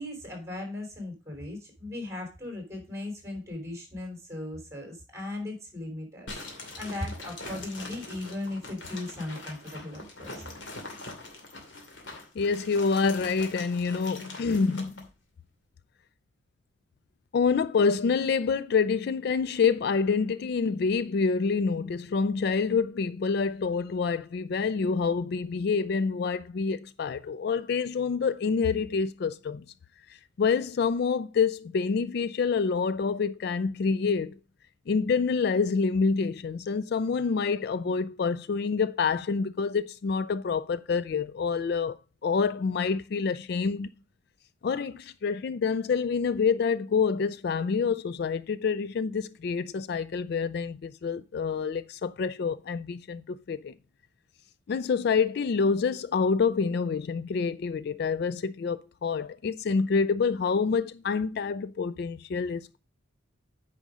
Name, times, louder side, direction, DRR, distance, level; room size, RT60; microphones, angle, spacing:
voice 1, 0.0-6.4 6.8-10.5, left 2 dB, 15° right, 3.3 m, -37 dB
sound 1, 6.3-15.1, left 2 dB, 70° left, 2.5 m, -43 dB
voice 2, 12.4-14.9 17.3-29.6 30.1-34.4 34.9-42.0 42.2-43.9 44.6-53.7 54.7-62.8, left 5 dB, 55° left, 0.3 m, -27 dB
9.1 x 5.1 x 4.9 m
head